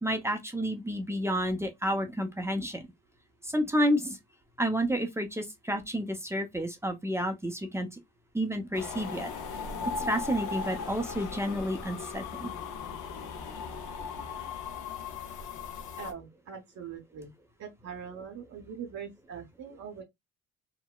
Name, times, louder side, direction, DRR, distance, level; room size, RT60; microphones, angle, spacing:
voice 1, 0.0-2.8 3.4-4.2 4.6-7.9 8.3-9.3 10.0-12.5, equal, 10° right, 0.6 m, -30 dB
sound 1, 8.7-16.1, left 5 dB, 65° left, 0.7 m, -37 dB
voice 2, 16.0-17.3 17.6-20.0, right 7 dB, 55° right, 0.8 m, -42 dB
2.9 x 2.0 x 2.3 m
supercardioid pair, 65°, 34 cm